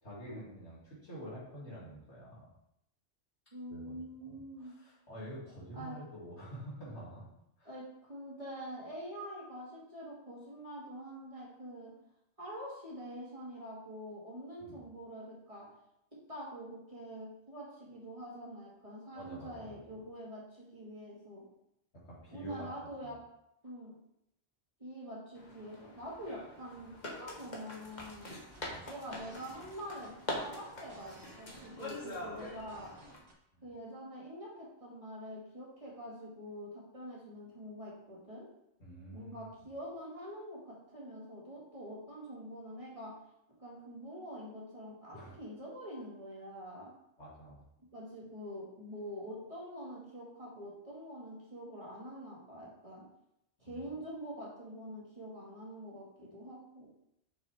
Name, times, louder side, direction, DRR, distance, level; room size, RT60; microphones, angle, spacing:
voice 1, 0.0-2.5 3.7-4.0 4.2-7.2 7.6-7.7 14.6-14.8 19.1-19.8 21.9-22.7 28.7-28.8 33.5-33.6 38.8-39.5 45.1-45.4 47.2-47.6 53.6-53.9, right 1 dB, 65° left, -7 dB, 2.8 m, -47 dB
voice 2, 3.5-4.8 5.7-6.0 7.6-11.9 12.4-15.7 16.3-21.5 22.3-23.2 23.6-23.9 24.8-28.4 28.8-32.9 33.6-38.5 39.1-43.1 43.6-46.9 47.9-53.0 53.6-56.9, equal, 30° right, -6 dB, 2.0 m, -45 dB
sound 1, 25.3-33.2, left 1 dB, 40° left, 1.4 m, -44 dB
sound 2, 27.8-33.3, right 2 dB, 80° right, 1.5 m, -57 dB
6.7 x 5.9 x 3.5 m, 0.80 s
omnidirectional pair, 1.2 m